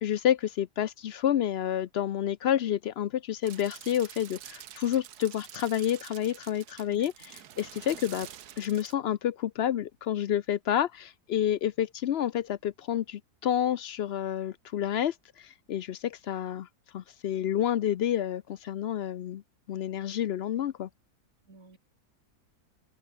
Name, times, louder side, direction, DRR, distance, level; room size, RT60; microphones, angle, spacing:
voice 1, 0.0-7.1 7.6-8.3 8.6-16.7 16.9-19.4 19.7-20.9, left 10 dB, 65° left, 0.6 m, -29 dB
sound 1, 3.4-8.9, right 11 dB, 85° right, 1.5 m, -47 dB
voice 2, 6.9-7.3 21.5-21.8, right 3 dB, 60° right, 3.9 m, -54 dB
open air
omnidirectional pair, 1.6 m